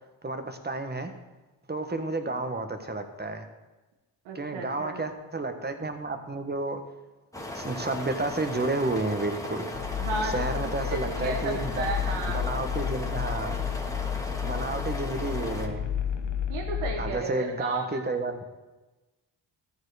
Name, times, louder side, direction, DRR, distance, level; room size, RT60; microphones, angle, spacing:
voice 1, 0.2-1.1 1.7-3.5 4.3-6.8 7.5-9.7 10.2-11.9 12.3-13.7 14.4-15.9 17.0-18.4, right 2 dB, 20° right, 6 dB, 1.3 m, -31 dB
voice 2, 4.2-5.0 10.0-12.4 16.5-18.0, right 3 dB, 90° right, 1 dB, 1.2 m, -34 dB
sound 1, 7.3-15.7, left 1 dB, 5° left, 1.8 m, -37 dB
sound 2, 9.7-17.1, left 8 dB, 60° left, 0.9 m, -32 dB
13.5 x 4.6 x 5.0 m, 1.1 s
supercardioid pair, 50°, 49 cm